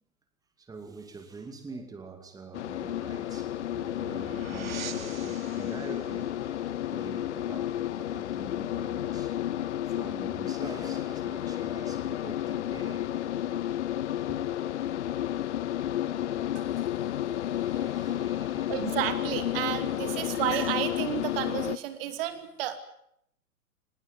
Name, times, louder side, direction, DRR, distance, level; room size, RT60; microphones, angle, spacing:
voice 1, 0.6-9.4 9.8-13.1 14.3-14.4 14.7-14.8 15.3-15.4 15.7-16.4 17.5-18.7, right 4 dB, 10° right, 2.5 m, -46 dB
sound 1, 2.5-21.8, left 12 dB, 50° left, 1.0 m, -31 dB
sound 2, 2.9-8.2, right 7 dB, 65° right, 2.1 m, -46 dB
voice 2, 18.7-22.8, right 11 dB, 40° right, 2.9 m, -31 dB
25.5 x 20.0 x 9.5 m
figure-of-eight pair, 115°, 44 cm